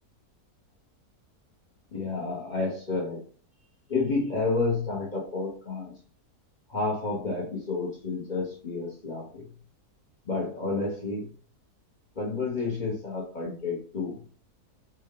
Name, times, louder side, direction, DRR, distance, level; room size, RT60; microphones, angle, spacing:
voice 1, 1.9-3.2 3.9-5.9 6.7-9.5 10.2-11.3 12.1-14.2, left 3 dB, 35° left, -2 dB, 1.0 m, -30 dB
3.3 x 2.6 x 3.6 m, 0.42 s
omnidirectional pair, 1.6 m